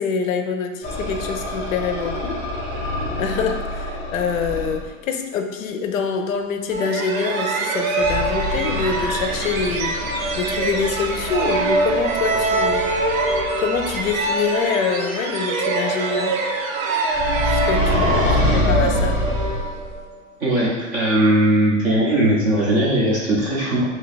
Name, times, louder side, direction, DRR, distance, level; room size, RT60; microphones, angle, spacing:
voice 1, 0.0-2.4 3.2-10.0 10.4-12.9 13.6-16.4 17.4-19.2, left 5 dB, 80° left, 6 dB, 0.6 m, -25 dB
sound 1, 0.8-4.9 8.0-14.3 17.1-20.0, left 1 dB, 15° left, 0.8 m, -26 dB
sound 2, 6.7-20.2, right 3 dB, 85° right, 0.7 m, -24 dB
voice 2, 20.4-23.8, right 1 dB, 20° right, -6 dB, 0.3 m, -19 dB
2.6 x 2.3 x 3.9 m, 1.3 s
hypercardioid pair, 140°, 40 cm